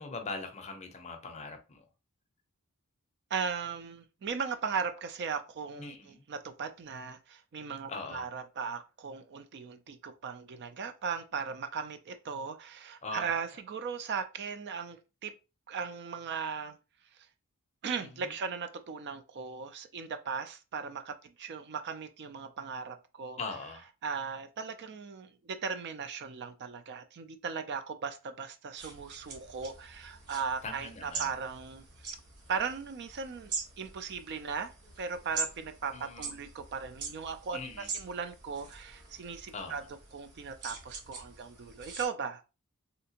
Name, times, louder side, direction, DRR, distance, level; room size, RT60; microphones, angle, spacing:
voice 1, 0.0-1.9 5.8-6.2 7.9-8.3 13.0-13.3 18.2-18.3 23.4-23.9 30.6-31.3 35.9-36.3 37.5-37.9 39.5-39.9, left 3 dB, 30° left, 0.5 m, -41 dB
voice 2, 3.3-15.0 15.2-15.3 15.7-16.8 17.8-23.4 24.0-31.8 32.5-34.7 35.0-39.8 40.1-42.4, right 6 dB, 50° right, 0.4 m, -37 dB
sound 1, 28.8-42.0, right 4 dB, 90° right, 1.0 m, -43 dB
3.3 x 2.8 x 2.8 m
head